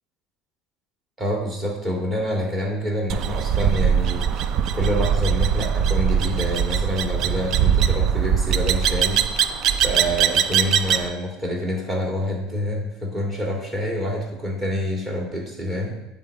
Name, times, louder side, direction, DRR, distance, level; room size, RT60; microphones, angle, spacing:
voice 1, 1.2-9.4 9.8-15.9, equal, 20° right, -1 dB, 2.0 m, -27 dB
sound 1, 3.1-11.1, right 8 dB, 55° right, 0.4 m, -21 dB
9.2 x 3.5 x 4.7 m, 0.92 s
supercardioid pair, 115°, 0 cm